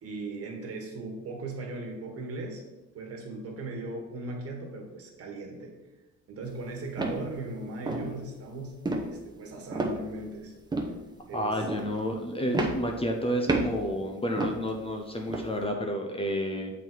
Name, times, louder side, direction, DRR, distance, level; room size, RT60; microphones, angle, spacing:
voice 1, 0.0-2.6 2.9-5.7 6.3-10.5 10.9-11.0 11.3-11.6, right 2 dB, 45° right, 1 dB, 1.6 m, -38 dB
sound 1, 6.5-6.6 7.0-7.2 7.9-8.1 8.9-9.1 9.7-10.3 10.7-11.0 11.6-11.9 12.5-13.2 13.5-13.8 14.4-14.7 15.3-15.5, right 2 dB, 15° right, 0.8 m, -30 dB
voice 2, 11.3-16.7, equal, 20° left, 2 dB, 0.6 m, -30 dB
7.2 x 4.1 x 4.5 m, 1.1 s
cardioid pair, 135°, 32 cm